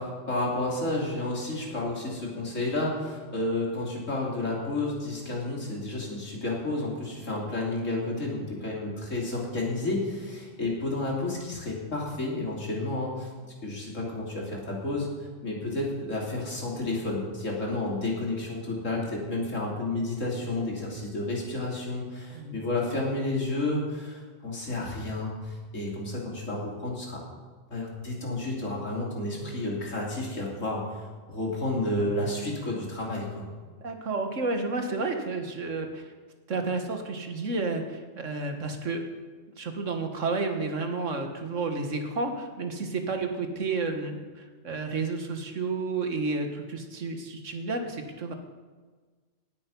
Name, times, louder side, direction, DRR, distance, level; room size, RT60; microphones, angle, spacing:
voice 1, 0.0-13.3 13.6-27.2 27.7-33.5, left 2 dB, 85° left, -2 dB, 3.4 m, -31 dB
voice 2, 33.8-36.1 36.5-39.0 39.6-48.3, right 3 dB, 80° right, 5 dB, 1.9 m, -31 dB
17.5 x 9.1 x 5.4 m, 1.4 s
omnidirectional pair, 1.3 m